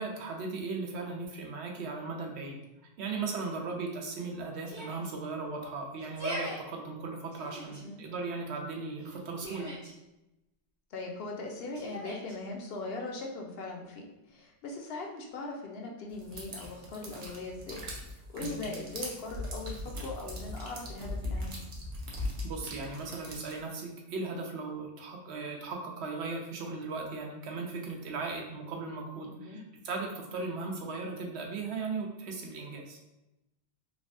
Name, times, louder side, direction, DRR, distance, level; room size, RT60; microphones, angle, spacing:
voice 1, 0.0-2.6 3.0-9.7 18.4-18.6 22.4-33.0, right 3 dB, 80° right, 2 dB, 0.8 m, -37 dB
Yell, 4.6-5.1 6.0-6.6 7.3-7.8 9.0-9.9 11.7-12.4, equal, 20° right, 0.6 m, -40 dB
voice 2, 7.7-8.0 10.9-17.9 18.3-21.6 29.3-29.6, left 3 dB, 70° left, 0 dB, 0.7 m, -40 dB
sound 1, 16.2-23.6, left 1 dB, 55° right, 0.7 m, -39 dB
3.3 x 2.1 x 2.5 m, 0.94 s
omnidirectional pair, 1.1 m